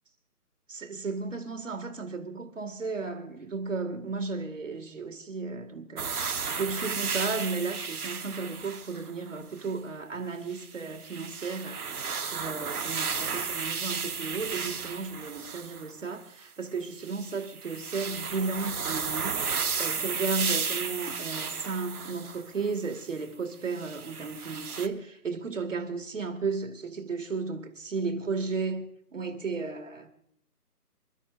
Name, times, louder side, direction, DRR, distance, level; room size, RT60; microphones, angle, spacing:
voice 1, 0.7-6.1 6.6-12.0 12.3-19.3 19.8-28.9 29.1-30.1, right 4 dB, 50° right, 2.0 m, -34 dB
sound 1, 6.0-9.7 10.5-15.9 17.0-23.1 23.7-24.9, right 5 dB, 65° right, 1.1 m, -34 dB
27.5 x 12.0 x 2.5 m
hypercardioid pair, 175°, 47 cm